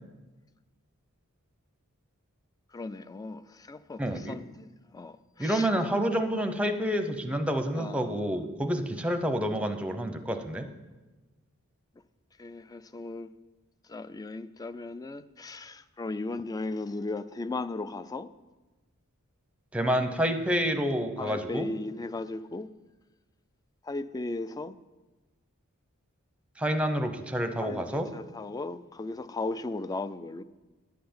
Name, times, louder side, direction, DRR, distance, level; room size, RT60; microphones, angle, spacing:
voice 1, 2.7-6.5 7.7-8.1 12.4-13.3 13.9-18.3 21.2-22.7 23.8-24.8 27.6-30.4, left 2 dB, 15° left, 14 dB, 0.3 m, -37 dB
voice 2, 4.0-4.4 5.4-10.7 19.7-21.7 26.6-28.1, equal, 5° right, 7 dB, 0.7 m, -28 dB
10.5 x 5.8 x 8.6 m, 1.2 s
head